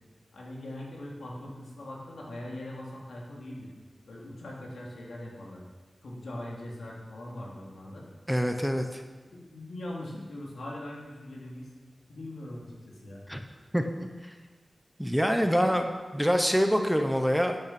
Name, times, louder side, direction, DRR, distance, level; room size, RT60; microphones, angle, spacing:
voice 1, 0.3-3.7 4.1-5.7 6.0-8.1 9.3-11.7 12.1-13.2, left 1 dB, 85° left, -3 dB, 3.0 m, -41 dB
voice 2, 8.3-9.0 13.3-13.4 13.7-14.3 15.0-17.6, equal, ahead, 5 dB, 1.1 m, -26 dB
10.5 x 8.7 x 6.1 m, 1.3 s
cardioid pair, 60°, 0 cm